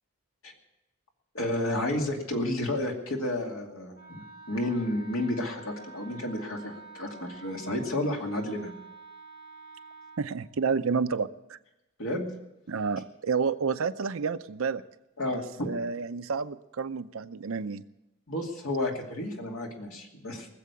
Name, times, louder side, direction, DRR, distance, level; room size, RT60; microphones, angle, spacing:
voice 1, 1.3-8.7 12.0-12.3 15.2-15.7 18.3-20.5, left 1 dB, 80° left, 1 dB, 2.5 m, -31 dB
Wind instrument woodwind instrument, 3.9-10.3, right 4 dB, 45° left, 1.0 m, -48 dB
voice 2, 10.2-11.6 12.7-14.8 15.3-17.8, right 5 dB, 75° right, 12 dB, 0.6 m, -30 dB
19.0 x 7.6 x 8.4 m, 0.93 s
head